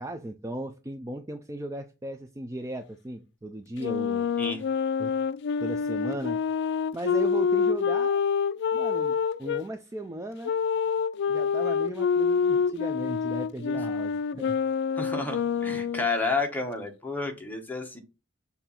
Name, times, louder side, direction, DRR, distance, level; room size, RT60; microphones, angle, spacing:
voice 1, 0.0-4.3 5.0-5.1 5.6-6.4 6.9-8.2 8.7-10.5 11.3-14.6 15.7-15.8, right 1 dB, 15° right, 0.5 m, -36 dB
Wind instrument woodwind instrument, 3.8-9.6 10.4-16.2, left 6 dB, 60° left, 0.3 m, -27 dB
voice 2, 15.0-18.0, left 3 dB, 10° left, 1.3 m, -30 dB
6.8 x 2.8 x 5.7 m
head